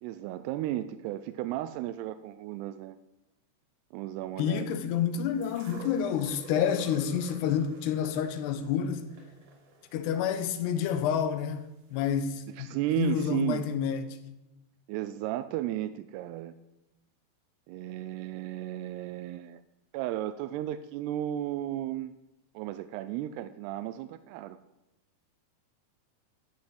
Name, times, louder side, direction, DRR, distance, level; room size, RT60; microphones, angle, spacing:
voice 1, 0.0-3.0 3.9-4.8 12.5-13.6 14.9-16.5 17.7-19.6 19.9-22.1 22.5-24.6, right 13 dB, 85° right, 2.4 m, -34 dB
voice 2, 4.4-9.0 9.9-11.7 11.9-14.2, left 8 dB, 80° left, 2.8 m, -29 dB
sound 1, 5.4-11.5 12.3-12.4, right 2 dB, 60° right, 3.4 m, -49 dB
15.0 x 6.4 x 7.8 m
omnidirectional pair, 5.0 m